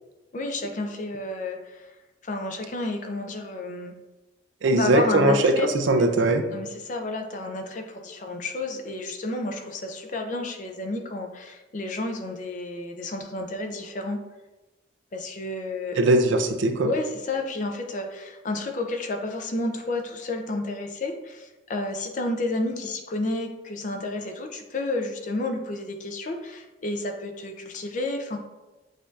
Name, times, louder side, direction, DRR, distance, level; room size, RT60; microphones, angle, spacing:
voice 1, 0.3-1.9 2.2-3.9 4.7-5.7 6.5-14.2 15.1-16.0 16.8-28.4, left 2 dB, 40° left, 4 dB, 0.4 m, -31 dB
voice 2, 4.6-6.4 16.0-16.9, right 2 dB, 75° right, 6 dB, 0.4 m, -20 dB
6.3 x 2.6 x 2.3 m, 1.1 s
head